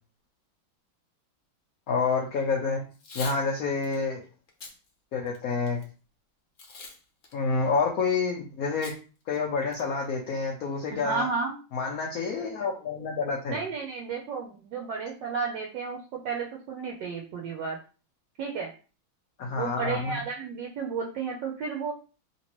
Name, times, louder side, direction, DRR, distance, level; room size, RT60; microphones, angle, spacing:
voice 1, 1.9-2.8 3.1-4.2 5.1-5.8 7.3-8.9 9.3-11.3 11.7-13.6 19.4-20.1, left 4 dB, 85° left, 0 dB, 0.7 m, -28 dB
Packing tape duct tape / Tearing, 2.9-3.4 3.8-4.0 4.5-4.7 5.3-5.8 6.6-7.0 7.2-7.3 8.8-9.0 9.3-9.4 9.7-10.1, left 3 dB, 60° left, 0.8 m, -42 dB
voice 2, 10.9-11.6 13.5-17.8 18.4-18.7 19.5-21.9, right 5 dB, 70° right, 0 dB, 1.2 m, -32 dB
3.2 x 2.9 x 3.0 m, 0.36 s
omnidirectional pair, 2.2 m